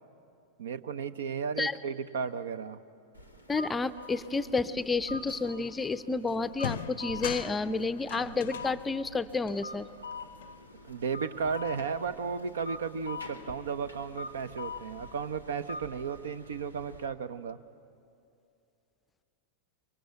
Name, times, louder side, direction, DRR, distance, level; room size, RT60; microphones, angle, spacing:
voice 1, 0.6-2.8 10.8-17.6, right 6 dB, 65° right, 14 dB, 0.8 m, -34 dB
sound 1, 3.1-17.1, left 2 dB, 85° right, 1.7 m, -45 dB
voice 2, 3.5-9.9, left 3 dB, 15° left, 13 dB, 0.6 m, -30 dB
sound 2, 5.9-6.1 6.5-11.1 11.4-12.4, left 10 dB, 60° left, 0.6 m, -43 dB
24.5 x 23.0 x 8.0 m, 2.6 s
figure-of-eight pair, 90°, 0 cm